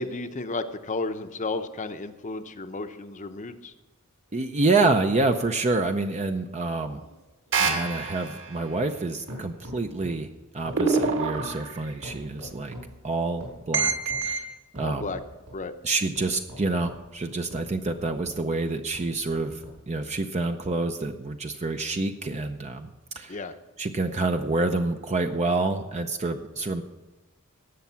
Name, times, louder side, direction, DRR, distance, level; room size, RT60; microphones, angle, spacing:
voice 1, 0.0-3.7 14.8-15.2 15.5-15.7 23.3-23.5, left 3 dB, 35° left, 9 dB, 0.8 m, -33 dB
voice 2, 4.3-7.0 7.6-10.3 10.5-12.7 13.0-14.0 14.2-14.5 14.7-15.1 15.8-22.9 23.2-23.4 23.8-26.8, right 3 dB, 30° right, 5 dB, 0.6 m, -27 dB
sound 1, 6.2-9.0 9.3-10.3 10.7-13.0 13.4-14.3 14.8-15.6 16.2-18.4 18.9-19.8 20.4-20.5, equal, 85° right, 5.3 m, -44 dB
sound 2, 7.5-8.6 10.7-11.9 13.7-14.5, right 4 dB, 60° right, 2.4 m, -26 dB
18.0 x 7.1 x 5.8 m, 1.2 s
head